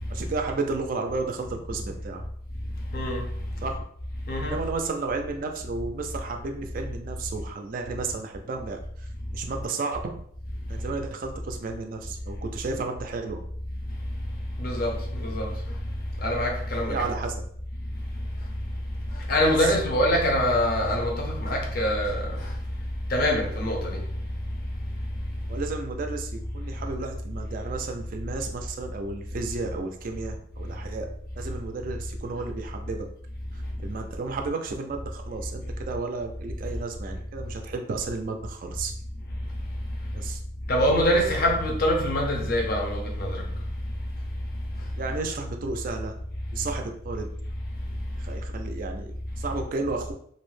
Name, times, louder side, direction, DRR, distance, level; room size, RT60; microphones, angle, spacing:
voice 1, 0.1-2.2 3.5-3.8 4.4-10.1 10.7-13.4 16.8-17.4 19.6-19.7 25.5-31.1 31.4-33.1 33.5-38.9 40.1-40.4 45.0-46.2 46.5-47.3 48.1-50.1, right 3 dB, 45° right, 0.3 m, -33 dB
voice 2, 2.9-3.3 4.3-4.6 14.6-15.5 16.2-17.1 19.3-22.3 23.1-24.0 40.7-43.4, equal, 50° left, 0.6 m, -24 dB
2.6 x 2.0 x 3.1 m
head